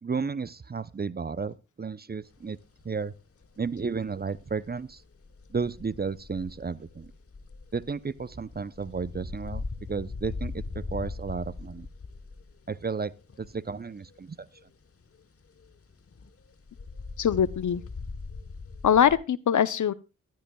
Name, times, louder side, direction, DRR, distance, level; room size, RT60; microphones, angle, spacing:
voice 1, 0.0-2.6 2.8-3.1 3.6-5.0 5.5-7.1 7.7-9.6 9.9-11.9 12.7-13.1 13.4-14.5, right 5 dB, 30° right, 0.6 m, -33 dB
sound 1, 2.2-3.1 3.4-14.2 14.4-19.2, left 4 dB, 45° left, 1.2 m, -41 dB
voice 2, 17.2-17.8 18.8-19.9, left 8 dB, 65° left, 0.7 m, -22 dB
15.0 x 12.5 x 2.3 m
cardioid pair, 45°, 32 cm